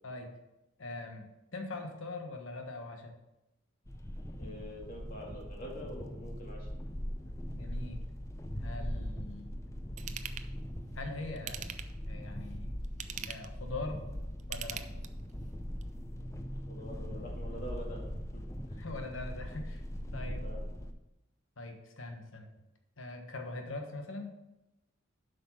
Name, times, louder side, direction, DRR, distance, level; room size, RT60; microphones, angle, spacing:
voice 1, 0.8-1.3 1.5-3.1 7.5-8.0 8.6-9.6 10.9-11.6 12.0-12.7 13.2-14.0 14.5-14.8 18.8-19.8 20.1-20.4 21.6-22.5 23.0-24.3, left 2 dB, 85° left, 4 dB, 1.3 m, -42 dB
sound 1, 3.9-20.9, equal, 15° left, 0.5 m, -40 dB
voice 2, 4.4-6.7 16.7-18.0 18.7-18.8 20.4-20.6, equal, 45° left, -2 dB, 2.3 m, -45 dB
Ratchet pawl / Tools, 10.0-10.5 11.4-12.1 12.8-13.6 14.4-15.3 15.8-15.9, right 9 dB, 40° right, 0.4 m, -41 dB
7.8 x 5.4 x 5.7 m, 0.93 s
head